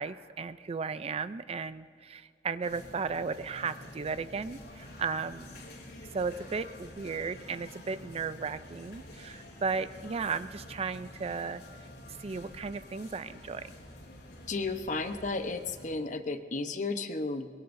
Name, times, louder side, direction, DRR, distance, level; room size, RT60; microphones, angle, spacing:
voice 1, 0.0-5.5 6.1-11.9 12.2-13.8, right 5 dB, 35° right, 13 dB, 0.4 m, -35 dB
sound 1, 2.6-16.0, left 1 dB, 70° left, 3.9 m, -49 dB
voice 2, 14.5-17.5, left 3 dB, 45° left, 8 dB, 0.9 m, -33 dB
23.0 x 22.0 x 2.6 m, 2.1 s
head